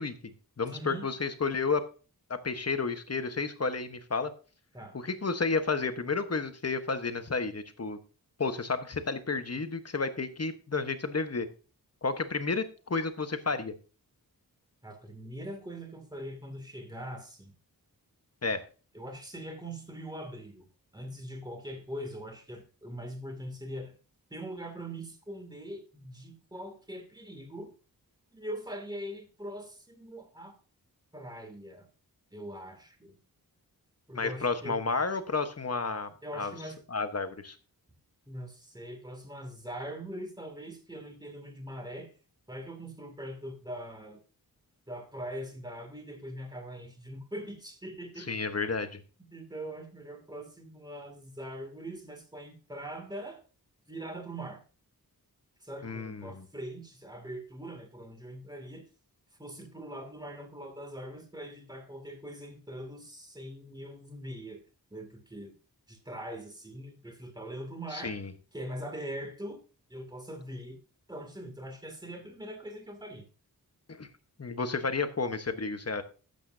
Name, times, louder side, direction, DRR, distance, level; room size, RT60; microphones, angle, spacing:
voice 1, 0.0-1.9 2.3-4.3 5.0-8.0 8.4-11.5 12.0-13.7 18.4-18.6 34.1-36.5 36.9-37.6 48.3-49.0 55.8-56.4 67.9-68.3 73.9-74.1 74.4-76.0, left 4 dB, 40° left, 8 dB, 1.2 m, -31 dB
voice 2, 0.7-1.1 4.7-5.0 14.8-17.5 18.9-20.7 20.9-24.0 24.3-27.7 28.3-30.6 31.1-31.9 32.3-33.2 34.1-34.8 36.2-36.8 38.3-42.1 42.5-44.2 44.9-48.3 49.3-53.4 53.9-54.6 55.6-58.9 59.4-64.6 64.9-65.5 65.9-68.2 68.5-69.6 69.9-70.8 71.1-73.3, right 1 dB, 10° right, 5 dB, 2.5 m, -42 dB
13.0 x 8.4 x 2.7 m, 0.35 s
wide cardioid pair, 85°, 37 cm